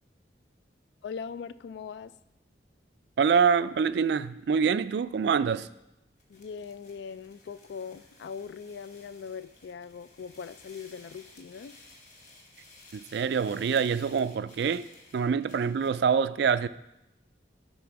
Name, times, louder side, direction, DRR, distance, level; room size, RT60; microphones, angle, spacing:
voice 1, 1.0-2.1 6.3-11.8, left 6 dB, 70° left, 0.3 m, -41 dB
voice 2, 3.2-5.7 12.9-14.9 15.1-16.7, right 6 dB, 65° right, 0.3 m, -25 dB
sound 1, 6.2-16.0, left 2 dB, 40° left, 1.2 m, -55 dB
10.5 x 4.2 x 5.9 m
head